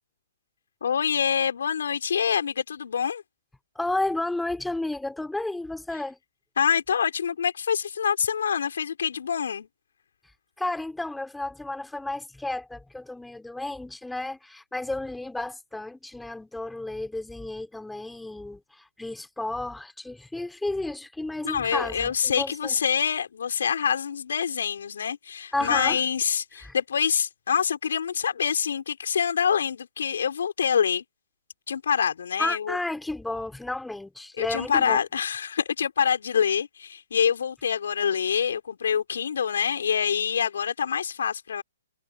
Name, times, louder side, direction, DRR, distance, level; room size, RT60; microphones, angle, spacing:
voice 1, 0.8-3.2 6.6-9.7 21.4-31.0 31.7-32.8 34.4-41.6, left 7 dB, 70° left, 4.8 m, -26 dB
voice 2, 3.7-6.2 10.6-22.8 25.5-26.0 26.6-26.8 32.4-35.0, left 2 dB, 5° left, 4.3 m, -32 dB
hypercardioid pair, 130°, 0 cm